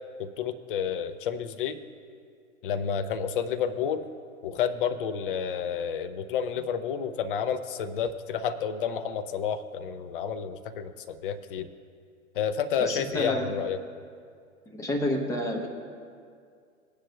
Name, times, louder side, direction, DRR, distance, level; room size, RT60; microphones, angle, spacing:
voice 1, 0.2-1.8 2.6-4.1 4.4-11.7 12.3-13.8, left 7 dB, 40° left, 11 dB, 0.6 m, -30 dB
voice 2, 12.8-13.5 14.7-15.7, left 1 dB, 5° left, 2 dB, 0.9 m, -29 dB
18.0 x 9.9 x 2.3 m, 2.3 s
figure-of-eight pair, 115°, 43 cm